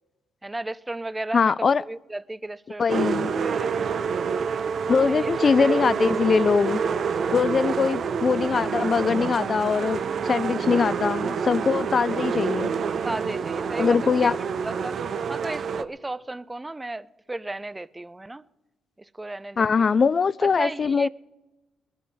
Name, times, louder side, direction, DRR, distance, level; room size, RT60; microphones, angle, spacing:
voice 1, 0.4-2.8 3.2-3.8 4.9-5.8 13.0-15.0 15.3-18.4 19.0-19.9 20.4-21.1, right 2 dB, 15° right, 0.5 m, -35 dB
voice 2, 1.3-1.8 2.8-3.4 4.9-6.8 7.3-12.7 13.8-14.4 19.6-21.1, left 5 dB, 40° left, 0.4 m, -22 dB
sound 1, 2.9-15.8, right 6 dB, 55° right, 0.6 m, -27 dB
21.0 x 12.0 x 4.1 m
cardioid pair, 90°, 0 cm